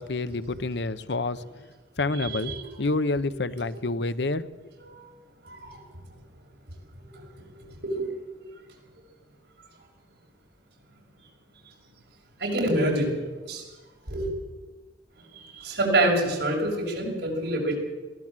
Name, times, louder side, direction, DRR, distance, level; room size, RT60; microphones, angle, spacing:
voice 1, 0.0-1.4 2.0-2.5 2.8-4.5, left 2 dB, 75° left, 13 dB, 0.8 m, -28 dB
voice 2, 2.2-2.6 4.8-5.1 5.4-5.7 7.8-8.0 12.4-13.1 13.4-13.6 14.1-14.3 15.4-17.8, right 1 dB, 75° right, -1 dB, 6.2 m, -26 dB
22.0 x 16.5 x 7.5 m, 1.3 s
head